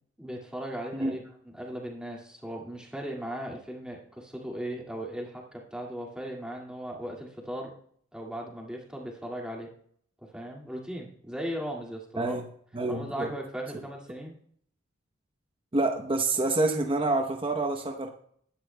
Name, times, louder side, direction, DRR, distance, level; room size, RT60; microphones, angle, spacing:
voice 1, 0.2-1.2 1.4-7.7 8.1-9.7 10.2-12.3 12.9-14.3, equal, 5° right, -2 dB, 2.1 m, -37 dB
voice 2, 12.7-13.3 15.7-18.1, right 2 dB, 25° right, 3 dB, 0.9 m, -27 dB
20.0 x 10.0 x 2.2 m, 0.63 s
head